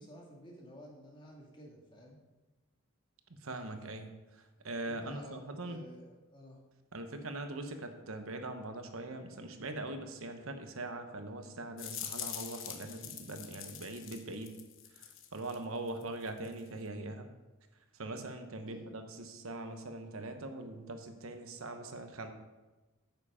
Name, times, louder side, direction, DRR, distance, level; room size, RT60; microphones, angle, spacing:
voice 1, 0.0-2.2 4.8-6.6 18.6-19.0, equal, 25° left, -2 dB, 2.2 m, -53 dB
voice 2, 3.4-4.1 4.6-5.8 6.9-14.5 15.3-17.3 18.0-22.3, right 2 dB, 85° right, 7 dB, 1.0 m, -41 dB
sound 1, 11.8-15.6 15.9-16.7, left 10 dB, 65° left, 1.0 m, -44 dB
9.3 x 7.5 x 5.0 m, 1.1 s
head